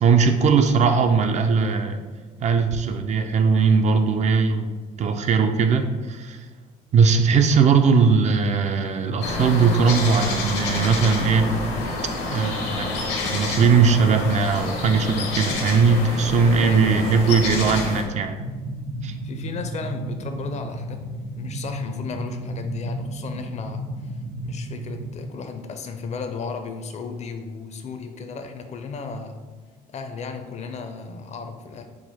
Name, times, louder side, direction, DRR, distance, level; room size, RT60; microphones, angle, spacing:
voice 1, 0.0-2.0 2.4-6.4 6.9-11.5 12.3-18.4 19.0-19.1, right 5 dB, 45° right, 7 dB, 0.4 m, -19 dB
sound 1, 9.2-18.0, left 3 dB, 80° left, 0.9 m, -28 dB
voice 2, 16.6-17.1 19.2-29.4 29.9-31.8, left 4 dB, 40° left, 6 dB, 0.5 m, -34 dB
sound 2, 18.3-25.2, right 1 dB, 85° right, 0.7 m, -33 dB
4.7 x 2.1 x 4.2 m, 1.3 s
cardioid pair, 110°, 17 cm